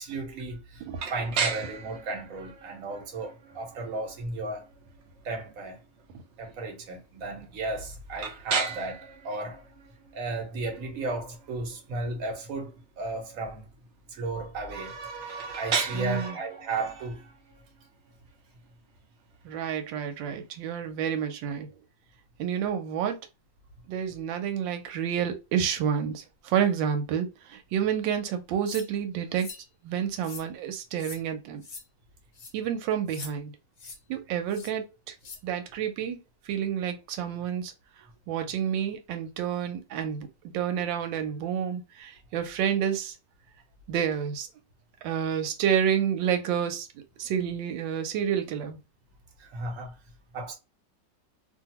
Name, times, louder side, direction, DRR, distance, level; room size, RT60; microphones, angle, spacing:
voice 1, 0.0-4.6 5.2-5.8 6.4-9.6 10.1-13.6 14.1-17.2 49.4-49.9 50.3-50.5, right 2 dB, 55° right, 1.2 m, -34 dB
sound 1, 1.0-20.7, right 6 dB, 70° right, 0.6 m, -38 dB
voice 2, 15.9-16.4 19.4-21.7 22.4-23.2 23.9-29.5 29.8-31.6 32.5-33.5 34.1-35.1 35.4-36.2 36.5-37.7 38.3-40.3 40.5-43.1 43.9-44.5 45.0-46.9 47.2-48.8, right 8 dB, 90° right, 1.3 m, -29 dB
sound 2, 28.7-28.9 29.4-29.6 30.2-30.5 31.0-31.2 31.6-31.8 32.3-32.5 33.1-33.3 33.8-34.0 34.5-34.7 35.2-35.4, left 4 dB, 65° left, 0.6 m, -42 dB
2.8 x 2.4 x 2.8 m
omnidirectional pair, 2.0 m